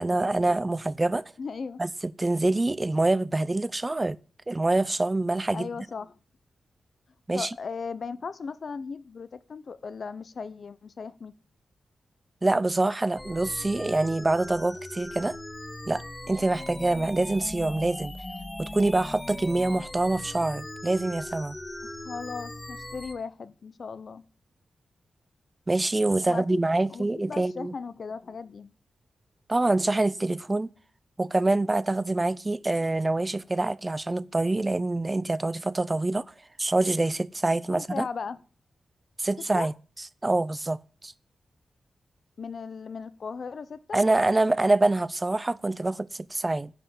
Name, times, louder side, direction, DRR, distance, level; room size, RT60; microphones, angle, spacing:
voice 1, 0.0-1.2 1.8-4.2 4.5-5.7 7.3-7.5 12.4-15.4 15.9-18.1 18.6-21.6 25.7-27.7 29.5-30.7 31.2-36.3 36.6-38.1 39.2-39.7 40.2-41.1 43.9-46.7, right 2 dB, 25° right, 0.5 m, -25 dB
voice 2, 1.4-1.8 5.5-6.2 7.3-11.3 21.8-24.2 26.3-26.6 26.9-28.7 37.7-38.4 39.6-39.7 42.4-44.0, left 5 dB, 65° left, 0.8 m, -37 dB
sound 1, 13.2-23.2, left 1 dB, 20° left, 1.7 m, -39 dB
10.0 x 5.6 x 8.1 m
cardioid pair, 75°, 0 cm